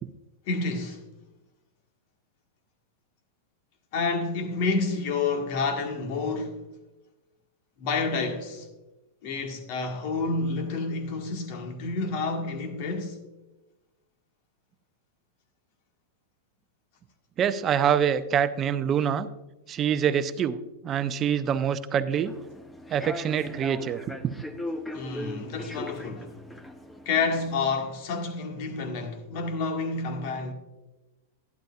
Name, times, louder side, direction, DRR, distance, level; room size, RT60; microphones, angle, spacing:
voice 1, 0.5-1.0 3.9-6.6 7.8-8.7 9.2-13.2 24.9-26.3 27.0-30.5, left 4 dB, 50° left, 1.7 m, -29 dB
voice 2, 17.4-19.3 19.7-22.3 22.9-24.3, right 8 dB, 30° right, 0.6 m, -25 dB
Human voice / Subway metro underground, 22.1-27.6, left 1 dB, 10° left, 0.9 m, -39 dB
11.5 x 11.5 x 2.4 m
figure-of-eight pair, 95°, 0 cm